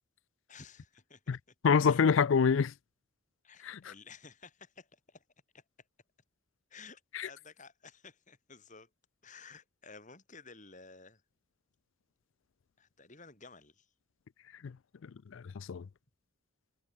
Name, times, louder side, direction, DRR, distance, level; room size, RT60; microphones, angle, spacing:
voice 1, 0.5-1.4 1.7-2.1 3.4-5.2 5.5-5.6 6.7-8.9 9.2-11.2 12.8-13.9, left 4 dB, 35° left, 4.7 m, -54 dB
voice 2, 1.6-2.7 3.6-3.8 7.1-7.3 14.6-14.8 15.0-15.9, left 6 dB, 65° left, 0.4 m, -27 dB
head